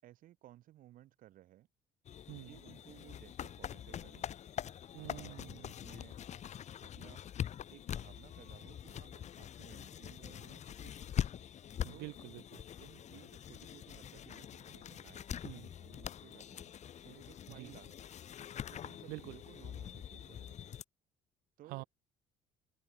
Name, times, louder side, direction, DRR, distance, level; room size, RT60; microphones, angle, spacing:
voice 1, 0.0-1.7 2.4-4.3 5.0-6.2 6.8-7.2 7.7-11.1 11.9-12.1 12.8-16.7 17.0-18.0 18.7-20.8 21.6-21.9, right 14 dB, 65° right, 6.8 m, -59 dB
sound 1, 2.0-20.8, left 10 dB, 50° left, 3.2 m, -44 dB
voice 2, 4.9-5.7 11.8-12.6 15.4-15.7 17.5-17.7 19.1-19.4 21.7-21.8, right 23 dB, 85° right, 3.6 m, -47 dB
cardioid pair, 105°, 15 cm